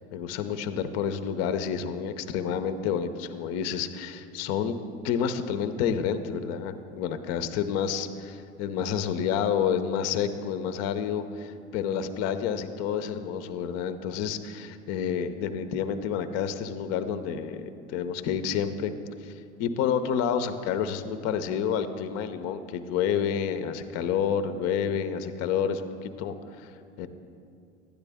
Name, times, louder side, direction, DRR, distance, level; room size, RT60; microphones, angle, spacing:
voice 1, 0.1-4.8 5.0-18.9 19.2-26.7 27.0-27.1, left 7 dB, 45° left, 10 dB, 0.7 m, -29 dB
12.0 x 9.7 x 3.5 m, 2.4 s
hypercardioid pair, 85°, 35 cm